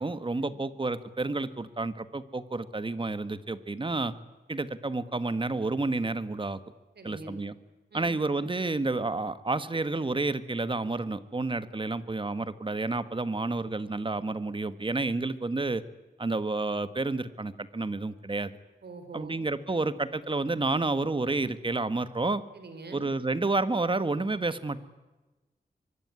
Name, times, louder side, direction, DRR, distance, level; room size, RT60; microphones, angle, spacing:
voice 1, 0.0-4.1 4.5-6.6 7.0-7.5 7.9-15.8 16.2-18.5 19.1-22.4 22.9-24.8, right 3 dB, 30° right, 13 dB, 1.5 m, -30 dB
voice 2, 6.9-7.4 7.9-8.1 18.8-19.3 22.5-23.1, right 3 dB, 80° right, 8 dB, 4.4 m, -44 dB
24.5 x 23.5 x 9.7 m, 1.1 s
wide cardioid pair, 95°, 17 cm